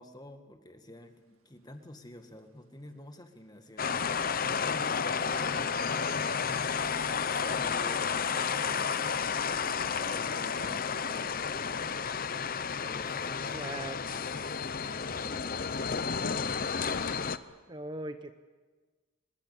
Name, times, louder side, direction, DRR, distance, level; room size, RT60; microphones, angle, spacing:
voice 1, 0.0-12.0 12.8-16.5, left 1 dB, 20° left, 6 dB, 1.9 m, -50 dB
sound 1, 1.0-10.8, right 1 dB, 75° right, 2.3 m, -57 dB
sound 2, 3.8-17.4, left 6 dB, 40° left, 0.7 m, -31 dB
voice 2, 13.5-14.0 17.7-18.3, right 1 dB, 20° right, 8 dB, 0.8 m, -39 dB
24.5 x 21.0 x 8.6 m, 1.3 s
head